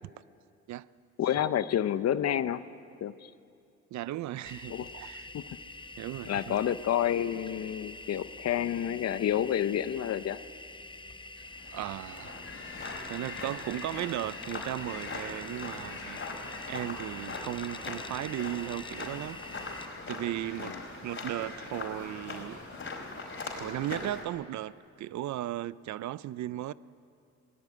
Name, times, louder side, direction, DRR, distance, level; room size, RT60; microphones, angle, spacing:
voice 1, 1.2-2.6 3.0-3.3 4.7-4.9 5.3-5.5 6.2-10.4 20.6-20.8, left 10 dB, 55° left, 14 dB, 0.7 m, -29 dB
voice 2, 3.9-5.3 6.0-6.6 11.4-11.5 11.7-12.4 13.0-16.2 16.7-19.7 20.1-22.6 23.5-26.7, right 14 dB, 70° right, 19 dB, 0.5 m, -36 dB
sound 1, 4.4-19.9, left 3 dB, 15° left, 0.6 m, -46 dB
sound 2, 11.5-24.2, left 3 dB, 40° left, 5.0 m, -41 dB
18.5 x 18.5 x 9.8 m, 2.4 s
cardioid pair, 90°, 30 cm